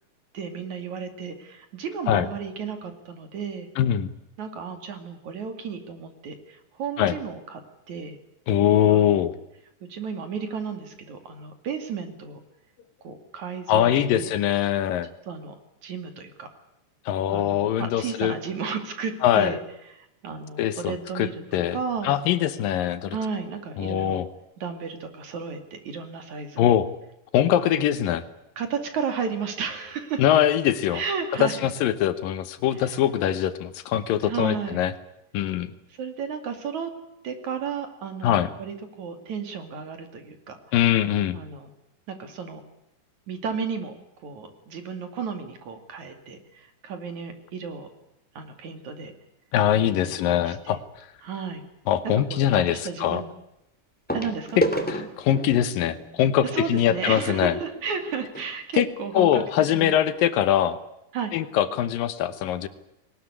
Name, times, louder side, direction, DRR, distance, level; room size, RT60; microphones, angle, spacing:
voice 1, 0.3-3.7 4.4-7.6 7.9-8.2 8.9-9.3 9.9-12.4 13.0-14.3 15.3-15.6 15.8-16.5 17.3-19.6 20.2-21.4 21.7-22.1 23.1-24.2 24.6-26.7 27.6-27.8 28.6-30.2 30.9-31.7 32.7-33.0 34.2-34.8 35.9-36.9 37.2-40.6 41.3-41.7 42.1-42.6 43.3-43.9 44.2-47.9 48.4-49.1 49.8-50.8 51.2-51.6 52.1-53.3 54.1-54.6 56.4-59.4 59.7-59.9 61.1-61.3, right 6 dB, 60° right, 7 dB, 3.7 m, -33 dB
voice 2, 3.8-4.1 7.0-7.2 8.5-9.3 13.7-15.1 17.1-18.3 19.2-19.5 20.6-21.8 22.0-23.2 23.8-24.3 26.6-26.9 27.3-28.2 30.2-31.0 31.4-34.9 35.3-35.7 38.2-38.5 40.7-41.4 49.5-50.8 51.9-53.2 54.6-57.5 58.7-58.9 59.1-60.8 61.3-62.7, left 10 dB, 80° left, 12 dB, 2.8 m, -22 dB
sound 1, 50.6-50.8 52.5-52.6 54.1-58.5 59.3-59.4 59.6-59.8 60.3-60.4, equal, 5° left, 2.2 m, -32 dB
20.5 x 19.5 x 9.6 m, 0.85 s
omnidirectional pair, 3.9 m